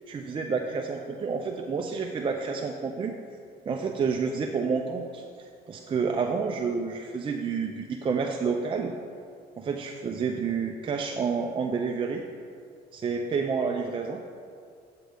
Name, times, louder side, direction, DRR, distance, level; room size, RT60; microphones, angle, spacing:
voice 1, 0.1-3.1 3.7-5.2 5.7-8.9 9.6-12.2 12.9-14.2, right 5 dB, 30° right, 3 dB, 0.5 m, -29 dB
9.1 x 7.4 x 3.4 m, 2.3 s
cardioid pair, 110°, 17 cm